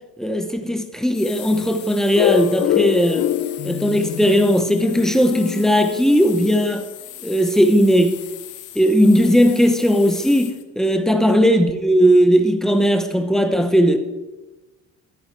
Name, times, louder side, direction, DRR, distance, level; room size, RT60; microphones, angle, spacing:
voice 1, 0.2-3.3 3.6-6.9 7.2-8.2 8.7-14.0, equal, ahead, 0.8 m, -17 dB
sound 1, 1.0-10.6, left 12 dB, 90° left, 1.3 m, -39 dB
sound 2, 2.2-6.7, left 10 dB, 50° left, 0.9 m, -24 dB
12.5 x 11.0 x 4.6 m
cardioid pair, 175°, 30 cm